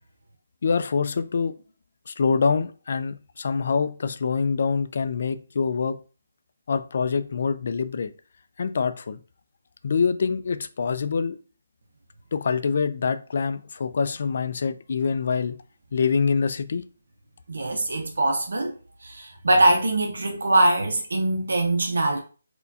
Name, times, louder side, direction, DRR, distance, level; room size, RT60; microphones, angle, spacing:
voice 1, 0.6-1.6 2.1-6.0 6.7-8.1 8.6-9.2 9.8-11.4 12.3-15.6 15.9-16.9, left 5 dB, 50° left, 0.3 m, -25 dB
voice 2, 17.5-18.7 19.0-22.2, right 1 dB, 85° right, 0.6 m, -22 dB
4.3 x 2.2 x 2.7 m
hypercardioid pair, 170°, 0 cm